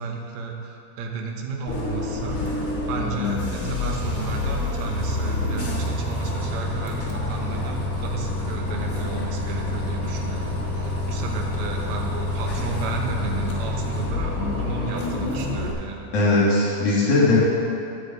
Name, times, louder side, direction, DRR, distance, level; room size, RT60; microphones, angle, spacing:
voice 1, 0.0-2.5 2.9-16.1, right 4 dB, 70° right, 1 dB, 2.1 m, -33 dB
Bus, 1.7-15.7, left 2 dB, 50° left, 1.0 m, -27 dB
voice 2, 16.1-17.4, left 2 dB, 65° left, -6 dB, 3.2 m, -19 dB
9.9 x 5.3 x 8.0 m, 2.7 s
omnidirectional pair, 3.8 m